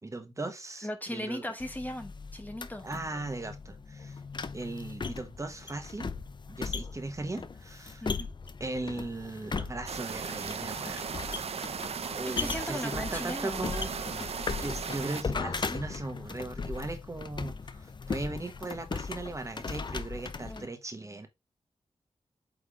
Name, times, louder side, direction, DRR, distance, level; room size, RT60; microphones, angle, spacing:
voice 1, 0.0-1.4 2.8-4.2 4.5-6.1 6.5-8.0 8.6-11.0 12.2-21.3, right 2 dB, 30° right, 1.3 m, -38 dB
voice 2, 0.8-2.9 8.0-8.3 12.3-13.7 20.5-20.7, left 1 dB, 15° left, 1.0 m, -38 dB
sound 1, 1.6-20.7, left 5 dB, 45° left, 0.6 m, -38 dB
sound 2, 9.9-15.2, right 6 dB, 70° right, 0.6 m, -37 dB
8.4 x 3.5 x 3.6 m
wide cardioid pair, 110°, 11 cm